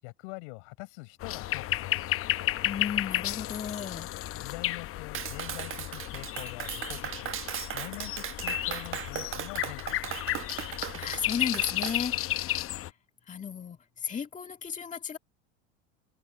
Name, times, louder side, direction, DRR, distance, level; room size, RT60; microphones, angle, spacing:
voice 1, 0.0-2.4 4.3-7.4 7.7-10.2, left 31 dB, 70° left, 6.3 m, -44 dB
sound 1, 1.2-12.9, left 14 dB, 40° left, 0.8 m, -33 dB
voice 2, 2.6-4.1 10.4-12.1 12.4-12.9 13.3-15.2, left 7 dB, 20° left, 1.8 m, -35 dB
Clapping, 5.1-12.0, right 11 dB, 35° right, 1.3 m, -37 dB
supercardioid pair, 100°, 34 cm